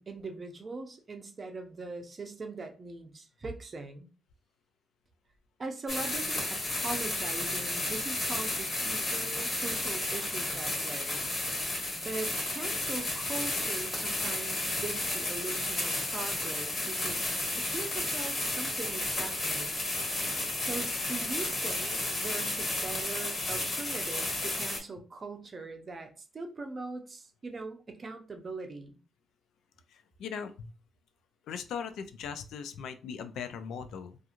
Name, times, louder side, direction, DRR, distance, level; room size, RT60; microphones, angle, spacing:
voice 1, 0.0-4.1 5.6-11.2 11.9-17.3 17.5-19.8 20.6-29.0, right 3 dB, 35° right, 5 dB, 0.5 m, -41 dB
sound 1, 5.9-24.8, left 2 dB, 35° left, 1.3 m, -32 dB
voice 2, 29.9-30.7 31.5-34.2, left 7 dB, 85° left, 9 dB, 0.3 m, -39 dB
2.8 x 2.4 x 2.4 m, 0.34 s
cardioid pair, 110°, 0 cm